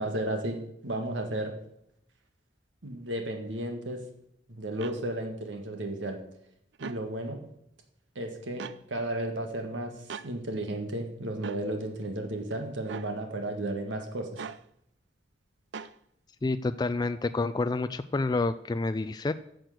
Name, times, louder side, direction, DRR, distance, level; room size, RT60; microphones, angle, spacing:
voice 1, 0.0-1.5 2.8-4.0 4.5-6.2 6.8-7.4 8.2-9.9 10.2-14.5, right 1 dB, 90° right, 4 dB, 1.8 m, -33 dB
sound 1, 4.8-5.0 6.7-7.0 8.6-8.8 10.1-10.3 11.4-11.6 12.9-13.1 14.4-14.6 15.7-15.9, right 5 dB, 70° right, 0.5 m, -39 dB
voice 2, 16.4-19.3, left 3 dB, 20° left, 11 dB, 0.3 m, -28 dB
10.5 x 6.5 x 7.8 m, 0.75 s
head